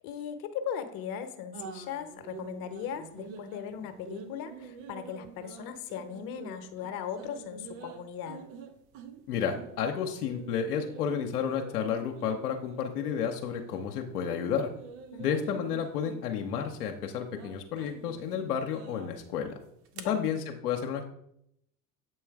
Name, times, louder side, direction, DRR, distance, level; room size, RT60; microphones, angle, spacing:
voice 1, 0.0-8.5 15.1-15.4 19.9-20.2, left 8 dB, 50° left, 7 dB, 0.9 m, -38 dB
sound 1, 1.5-13.8 14.1-20.0, right 6 dB, 55° right, 0.9 m, -47 dB
voice 2, 9.3-14.7 15.2-19.5 20.1-21.1, left 7 dB, 80° left, 3 dB, 0.8 m, -31 dB
7.7 x 3.1 x 4.6 m, 0.76 s
hypercardioid pair, 85°, 45 cm